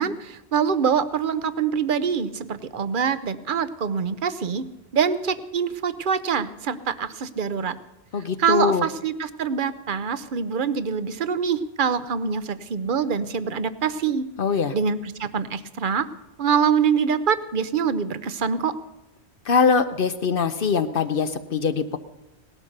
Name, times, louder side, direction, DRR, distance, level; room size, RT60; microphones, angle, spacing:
voice 1, 0.0-4.6 4.9-7.8 8.4-14.2 14.7-16.1 16.4-18.7, right 6 dB, 55° right, 14 dB, 0.9 m, -24 dB
voice 2, 8.1-8.8 14.4-14.7 19.5-22.0, left 5 dB, 60° left, 10 dB, 0.9 m, -22 dB
18.0 x 12.0 x 6.6 m, 0.92 s
omnidirectional pair, 1.1 m